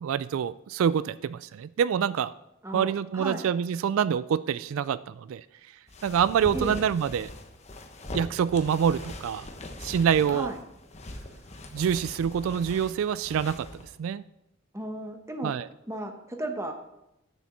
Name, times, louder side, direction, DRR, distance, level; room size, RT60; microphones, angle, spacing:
voice 1, 0.0-2.3 2.7-5.4 6.0-7.3 8.1-9.5 9.8-10.5 11.7-13.7 14.0-14.2 15.4-15.7, right 8 dB, 75° right, 16 dB, 0.3 m, -26 dB
voice 2, 2.6-3.4 6.5-6.8 10.3-10.6 14.7-15.5 15.9-16.7, right 1 dB, 15° right, 5 dB, 1.1 m, -34 dB
sound 1, 5.9-13.9, left 1 dB, 30° left, 1.1 m, -42 dB
10.0 x 7.1 x 5.9 m, 0.88 s
head